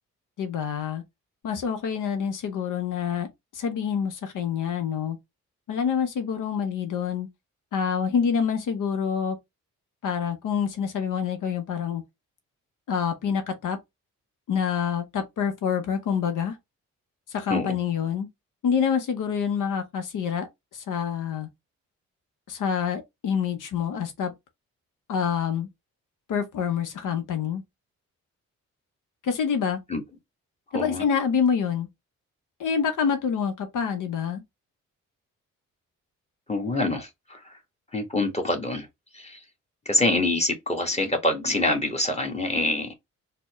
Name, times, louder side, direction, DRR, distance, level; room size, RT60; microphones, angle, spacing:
voice 1, 0.4-1.0 1.4-5.2 5.7-7.3 7.7-9.4 10.0-12.0 12.9-13.8 14.5-16.6 17.3-18.3 18.6-20.5 20.7-21.5 22.5-24.3 25.1-25.7 26.3-27.6 29.2-29.8 30.7-31.9 32.6-34.4, left 7 dB, 65° left, 0.7 m, -27 dB
voice 2, 30.7-31.0 36.5-37.5 37.9-38.9 39.1-39.4 39.8-42.9, left 2 dB, 20° left, 1.3 m, -25 dB
4.1 x 2.1 x 2.9 m
supercardioid pair, 50°, 34 cm